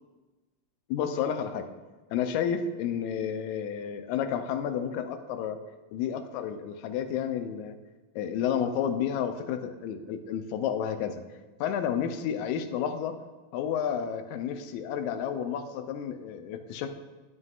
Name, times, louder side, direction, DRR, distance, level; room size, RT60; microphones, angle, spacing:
voice 1, 0.9-1.7 2.1-5.6 5.9-7.8 8.2-11.2 11.6-13.2 13.5-16.9, left 8 dB, 80° left, 7 dB, 1.8 m, -31 dB
9.5 x 7.6 x 2.4 m, 1.2 s
omnidirectional pair, 3.7 m